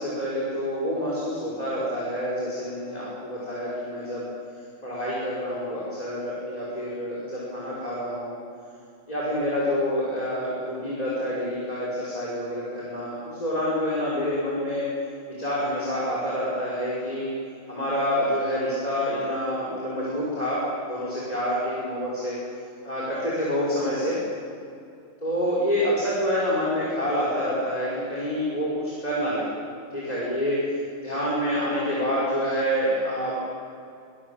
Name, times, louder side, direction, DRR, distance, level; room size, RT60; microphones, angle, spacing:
voice 1, 0.0-4.2 4.8-8.4 9.1-14.9 15.3-17.3 17.7-20.6 20.9-22.4 22.8-24.2 25.2-29.5 29.9-30.6 31.0-33.5, equal, 30° left, -6 dB, 5.8 m, -27 dB
27.0 x 19.5 x 7.4 m, 2.5 s
omnidirectional pair, 1.4 m